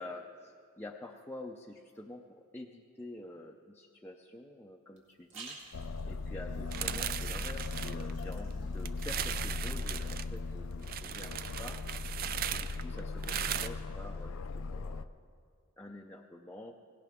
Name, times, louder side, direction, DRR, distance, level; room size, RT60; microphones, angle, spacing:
voice 1, 0.0-5.6 6.1-11.8 12.5-15.1 15.8-16.7, left 1 dB, 10° left, 0 dB, 0.5 m, -48 dB
sound 1, 5.0-11.1, right 4 dB, 60° right, 2.1 m, -55 dB
Aircraft, 5.7-15.1, left 3 dB, 70° left, 0.4 m, -38 dB
sound 2, 6.7-8.5 8.9-10.3 10.8-13.7, right 10 dB, 45° right, 0.4 m, -38 dB
17.0 x 17.0 x 3.6 m, 2.1 s
head